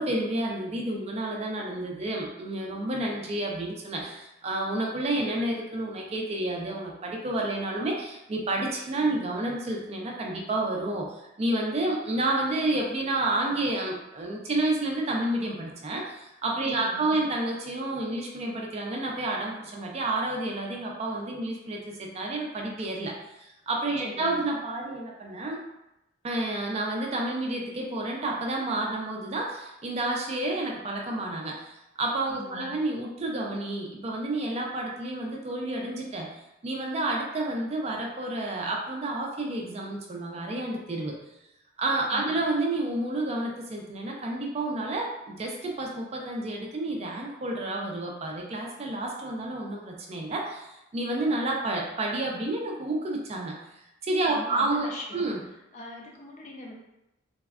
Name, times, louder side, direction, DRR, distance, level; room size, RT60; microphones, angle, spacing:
voice 1, 0.0-25.6 26.2-36.3 36.6-41.1 41.8-53.5 54.0-55.4, right 2 dB, 30° right, -1 dB, 0.4 m, -30 dB
voice 2, 16.7-17.2 24.0-24.4 32.4-32.8 42.1-42.4 54.3-55.3 55.7-56.7, left 2 dB, 35° left, -1 dB, 0.4 m, -42 dB
3.4 x 2.1 x 2.3 m, 0.91 s
head